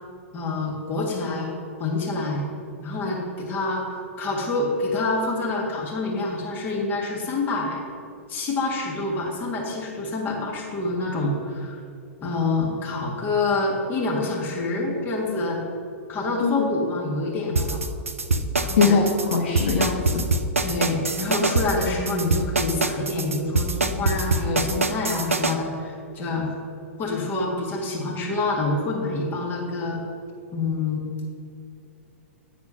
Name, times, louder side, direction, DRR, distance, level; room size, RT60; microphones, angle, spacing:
voice 1, 0.3-1.5 1.8-2.5 2.8-3.8 4.2-7.8 8.3-11.8 12.2-15.6 16.1-17.8 18.6-19.0 20.6-26.5 27.0-30.0 30.5-31.1, left 2 dB, 25° left, -2 dB, 1.7 m, -27 dB
sound 1, 17.6-25.5, right 3 dB, 75° right, 0.5 m, -24 dB
voice 2, 18.8-20.3, left 5 dB, 55° left, 0 dB, 0.9 m, -21 dB
9.4 x 4.3 x 5.7 m, 2.5 s
figure-of-eight pair, 100°, 7 cm